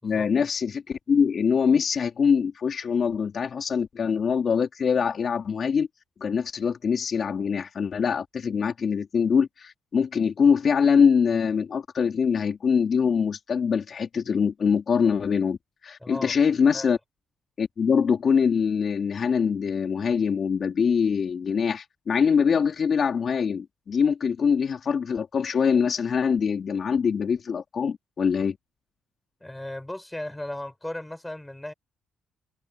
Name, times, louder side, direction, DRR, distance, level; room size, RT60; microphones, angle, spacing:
voice 1, 0.0-5.9 6.2-15.6 15.8-17.0 17.6-28.6, left 6 dB, 50° left, 3.3 m, -23 dB
voice 2, 16.0-16.3 16.7-17.0 29.4-31.7, left 1 dB, 10° left, 6.3 m, -36 dB
cardioid pair, 90°, 0 cm